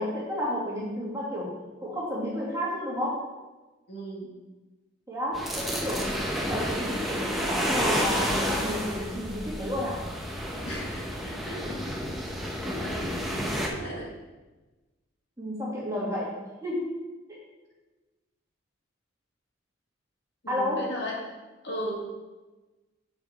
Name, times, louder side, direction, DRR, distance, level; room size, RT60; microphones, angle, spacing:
voice 1, 0.0-3.2 5.1-10.0 15.4-16.3 16.6-16.9 17.3-17.4 20.5-20.9, left 1 dB, 15° right, -6 dB, 2.2 m, -31 dB
voice 2, 3.9-4.3 10.6-11.8 12.8-14.1 20.4-21.2 21.6-22.1, right 1 dB, 60° left, -3 dB, 1.9 m, -37 dB
sound 1, 5.3-13.7, equal, ahead, 0.9 m, -30 dB
7.0 x 6.2 x 4.9 m, 1.2 s
head